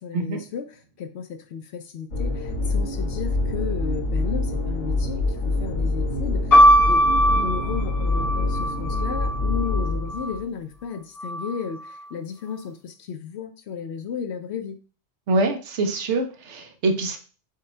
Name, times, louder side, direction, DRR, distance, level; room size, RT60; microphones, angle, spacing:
voice 1, 0.0-6.5 6.8-7.0 7.3-14.8, left 7 dB, 65° left, 8 dB, 0.8 m, -34 dB
sound 1, 2.1-10.4, left 2 dB, 85° left, 1.6 m, -26 dB
sound 2, 6.5-10.3 11.2-11.9, equal, 20° left, 0.7 m, -20 dB
voice 2, 15.3-17.2, right 2 dB, 70° right, 6 dB, 1.0 m, -24 dB
4.9 x 2.3 x 4.3 m, 0.36 s
omnidirectional pair, 1.3 m